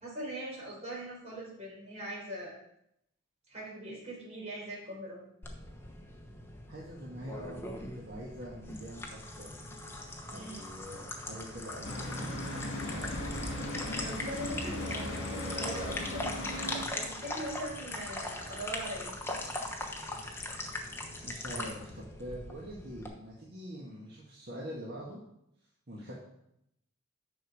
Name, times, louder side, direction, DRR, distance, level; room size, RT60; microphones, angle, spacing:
voice 1, 0.0-2.6 3.5-5.2 10.3-10.7 14.0-16.3 16.9-19.2, right 1 dB, 35° right, -4 dB, 4.3 m, -41 dB
sound 1, 5.4-23.1, left 1 dB, 10° left, 1.1 m, -41 dB
voice 2, 6.7-9.6 10.3-12.5 12.8-13.3 21.2-25.2 25.9-26.1, equal, 50° right, -4 dB, 1.7 m, -44 dB
Traffic noise roadway noise, 11.8-16.8, left 1 dB, 65° left, 2.2 m, -37 dB
9.9 x 6.4 x 4.9 m, 0.78 s
head